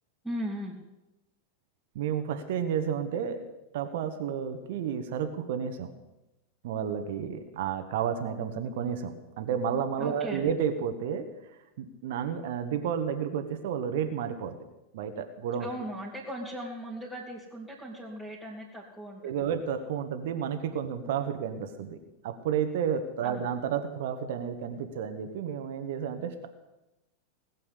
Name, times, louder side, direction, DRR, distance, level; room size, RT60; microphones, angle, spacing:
voice 1, 0.2-0.7 10.0-10.4 15.6-19.4 23.2-23.4, equal, ahead, -5 dB, 3.0 m, -38 dB
voice 2, 1.9-3.4 3.7-5.9 6.6-11.3 11.8-14.6 14.9-15.7 19.2-22.0 22.2-26.5, right 8 dB, 55° right, 7 dB, 1.4 m, -31 dB
19.0 x 7.6 x 8.3 m, 0.99 s
figure-of-eight pair, 90°, 0 cm